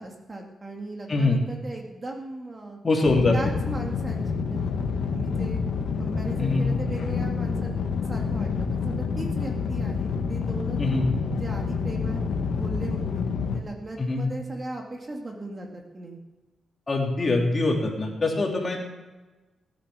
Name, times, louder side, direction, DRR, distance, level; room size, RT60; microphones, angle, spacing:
voice 1, 0.0-2.8 3.3-5.6 6.0-10.8 11.4-12.2 12.5-16.2, right 2 dB, 30° right, 1 dB, 2.1 m, -38 dB
voice 2, 1.1-1.4 2.8-3.3 6.4-6.7 10.8-11.1 14.0-14.2 16.9-18.8, left 3 dB, 30° left, -1 dB, 3.3 m, -23 dB
sound 1, 3.0-13.6, left 5 dB, 75° left, 1.5 m, -28 dB
18.0 x 10.0 x 6.2 m, 1.2 s
cardioid pair, 120°, 0 cm